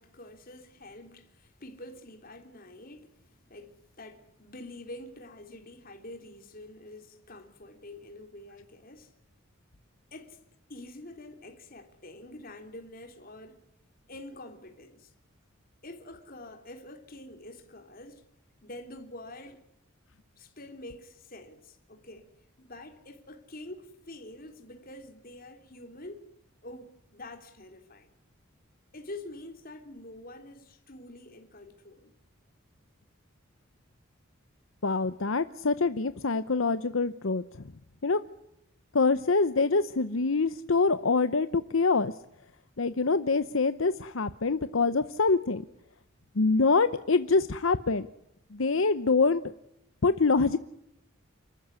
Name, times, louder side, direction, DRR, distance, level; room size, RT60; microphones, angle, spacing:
voice 1, 0.0-9.1 10.1-10.4 10.7-13.6 14.1-15.1 15.8-18.2 18.6-19.6 20.4-22.3 22.6-26.3 26.6-28.1 28.9-32.1, left 1 dB, 45° left, 3.3 m, -46 dB
voice 2, 34.8-37.6 38.0-38.2 38.9-42.1 42.8-45.6 46.3-48.1 48.5-49.4 50.0-50.6, left 4 dB, 75° left, 0.9 m, -25 dB
29.5 x 14.0 x 9.9 m
head